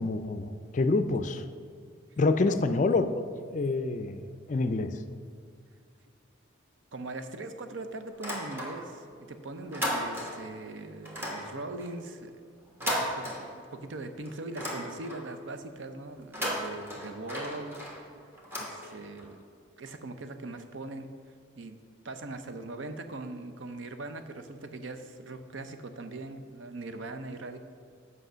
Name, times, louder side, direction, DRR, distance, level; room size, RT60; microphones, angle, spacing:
voice 1, 0.0-1.4 2.2-3.1 3.5-4.2 4.5-5.0, left 3 dB, 40° left, 10 dB, 0.4 m, -27 dB
voice 2, 2.4-2.8 6.9-12.4 12.8-17.8 18.6-19.5 19.8-21.1 21.6-21.8 22.0-27.6, right 2 dB, 75° right, 9 dB, 0.6 m, -41 dB
sound 1, 8.1-9.1 9.4-10.6 11.1-13.9 14.2-15.4 16.2-19.3, equal, 10° right, 1.3 m, -36 dB
8.0 x 5.6 x 6.2 m, 2.2 s
head